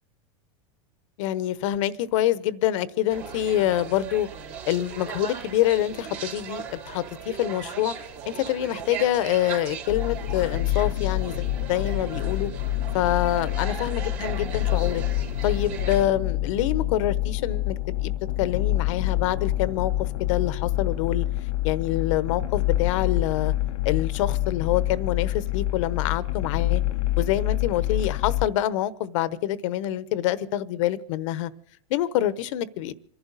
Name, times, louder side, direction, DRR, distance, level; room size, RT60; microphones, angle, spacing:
voice 1, 1.2-4.3 4.7-7.9 8.3-12.5 12.9-15.0 15.4-18.1 18.4-21.2 21.6-23.5 23.8-26.8 27.2-31.5 31.9-32.9, left 12 dB, 65° left, 1.0 m, -26 dB
sound 1, 3.1-16.1, right 7 dB, 50° right, 3.6 m, -38 dB
sound 2, 9.9-28.5, left 15 dB, 85° left, 0.8 m, -27 dB
27.0 x 11.5 x 4.0 m
supercardioid pair, 130°, 18 cm